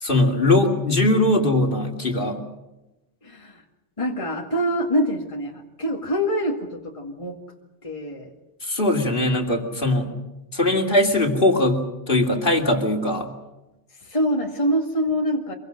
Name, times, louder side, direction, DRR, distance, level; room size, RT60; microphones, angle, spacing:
voice 1, 0.0-2.4 8.6-10.1 10.5-13.3, left 1 dB, 45° left, 3 dB, 2.8 m, -20 dB
voice 2, 3.2-3.6 4.0-7.4 7.8-8.3 13.9-15.5, equal, 25° left, 0 dB, 2.2 m, -25 dB
26.0 x 23.0 x 6.5 m, 1.0 s
omnidirectional pair, 1.2 m